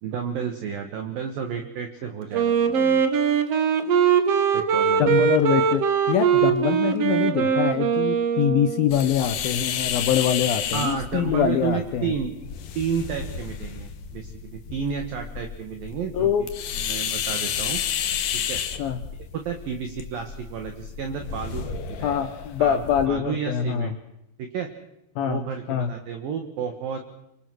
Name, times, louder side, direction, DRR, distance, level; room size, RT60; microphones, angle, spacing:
voice 1, 0.0-3.1 4.5-5.2 10.7-12.3 12.7-16.3 16.7-17.8 18.5-18.6 19.3-22.3 22.6-24.0 24.4-24.7 25.2-27.0, right 7 dB, 60° right, 5 dB, 2.9 m, -31 dB
Wind instrument woodwind instrument, 2.3-9.0, right 7 dB, 90° right, 1.3 m, -21 dB
voice 2, 5.0-12.1 16.1-16.5 18.8-19.0 22.0-23.9 25.2-25.4 25.7-25.9, left 9 dB, 75° left, 9 dB, 2.2 m, -24 dB
sound 1, 8.9-23.1, left 8 dB, 60° left, 2.3 m, -31 dB
26.0 x 25.0 x 6.3 m, 0.83 s
omnidirectional pair, 5.5 m